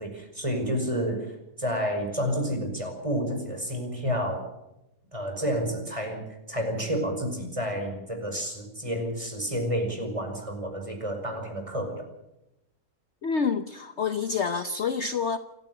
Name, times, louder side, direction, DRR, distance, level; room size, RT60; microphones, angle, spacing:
voice 1, 0.0-4.5 5.1-6.2 6.5-12.0, equal, 20° right, 4 dB, 5.5 m, -30 dB
voice 2, 13.2-15.4, left 5 dB, 50° left, 10 dB, 1.1 m, -27 dB
29.0 x 12.0 x 8.0 m, 0.88 s
omnidirectional pair, 1.7 m